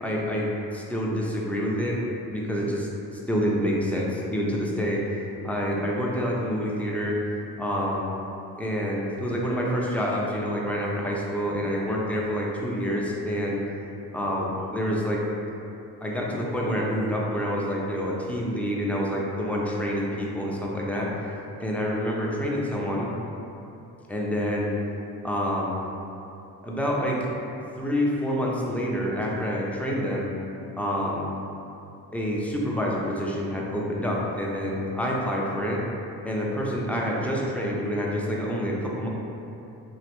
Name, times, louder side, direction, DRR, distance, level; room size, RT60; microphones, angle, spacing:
voice 1, 0.0-2.0 2.3-7.2 7.6-8.0 8.6-13.6 14.1-15.2 16.0-21.1 21.6-23.1 24.1-24.7 25.2-25.7 26.6-27.2 27.8-30.3 30.8-31.2 32.1-35.8 36.2-39.1, equal, 5° left, -4 dB, 0.4 m, -27 dB
3.0 x 2.0 x 2.9 m, 2.8 s
supercardioid pair, 60°, 40 cm